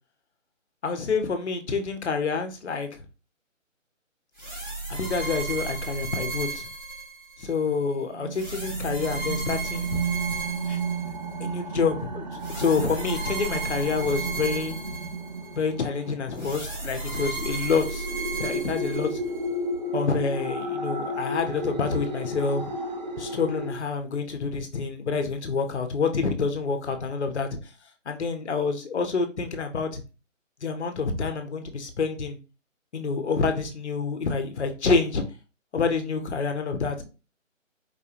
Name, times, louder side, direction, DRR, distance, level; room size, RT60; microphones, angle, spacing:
voice 1, 0.8-3.0 4.9-6.7 7.4-10.0 10.7-10.8 11.4-14.7 15.5-18.1 18.4-19.2 19.9-22.6 23.2-27.5 28.1-30.0 30.6-32.4 32.9-35.2 35.7-37.0, left 4 dB, 55° left, 6 dB, 1.1 m, -27 dB
sound 1, 4.4-7.5 8.3-11.4 12.4-15.6 16.4-19.5, right 3 dB, 5° right, 0.8 m, -34 dB
sound 2, 8.0-23.8, right 2 dB, 35° right, 0.6 m, -33 dB
4.8 x 3.8 x 2.9 m, 0.32 s
figure-of-eight pair, 160°, 40 cm